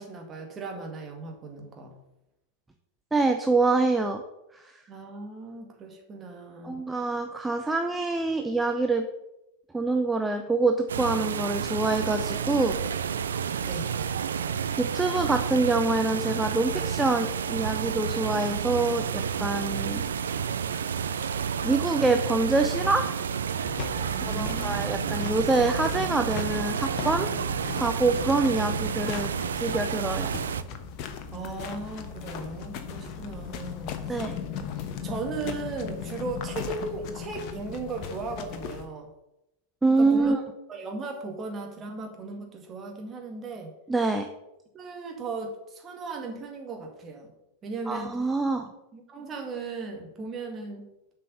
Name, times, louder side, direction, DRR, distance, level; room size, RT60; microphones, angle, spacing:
voice 1, 0.0-2.0 4.9-6.8 13.6-14.1 24.1-24.9 31.3-34.2 35.0-39.1 40.0-40.3 40.7-43.7 44.7-47.3 47.6-48.2 48.9-50.9, right 3 dB, 25° right, 2 dB, 2.0 m, -37 dB
voice 2, 3.1-4.2 4.5-4.6 6.6-9.1 9.7-12.8 14.8-20.0 21.6-23.0 24.2-27.3 27.7-29.3 29.5-30.3 34.1-34.3 39.8-40.4 43.9-44.3 47.9-48.7, right 3 dB, 10° right, 5 dB, 0.7 m, -25 dB
sound 1, 10.9-30.6, right 7 dB, 65° right, 0.5 m, -30 dB
sound 2, 23.6-38.9, left 7 dB, 40° left, 1.1 m, -37 dB
7.6 x 5.5 x 6.8 m, 0.89 s
figure-of-eight pair, 90°, 0 cm